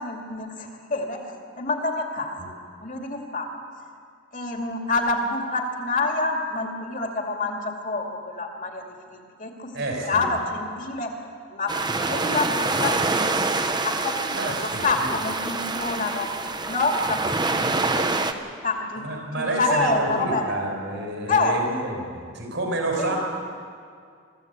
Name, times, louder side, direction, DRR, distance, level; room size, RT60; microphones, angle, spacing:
voice 1, 0.0-2.6 2.8-3.5 4.3-9.7 10.0-11.1 11.5-11.7 12.0-18.4 18.6-19.1 19.4-20.5 21.3-21.6 23.0-23.1, left 3 dB, 40° left, 2 dB, 2.3 m, -27 dB
voice 2, 9.7-10.3 14.3-15.1 19.0-22.0 22.3-23.2, right 2 dB, 65° right, 1 dB, 5.1 m, -29 dB
sound 1, 11.7-18.3, right 3 dB, 20° right, 0.9 m, -26 dB
23.0 x 15.0 x 8.2 m, 2.2 s
head